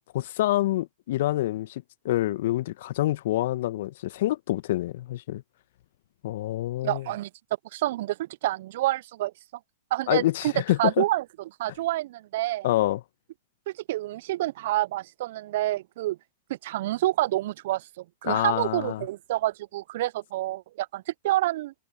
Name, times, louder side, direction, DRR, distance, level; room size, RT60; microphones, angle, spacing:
voice 1, 0.1-5.4 6.2-7.0 10.1-11.0 12.6-13.0 18.2-19.0, left 15 dB, 60° left, 1.2 m, -27 dB
voice 2, 6.8-7.3 7.7-9.3 9.9-10.5 10.8-11.2 11.6-12.7 13.7-16.2 16.5-21.7, right 16 dB, 55° right, 0.5 m, -28 dB
figure-of-eight pair, 105°, 0 cm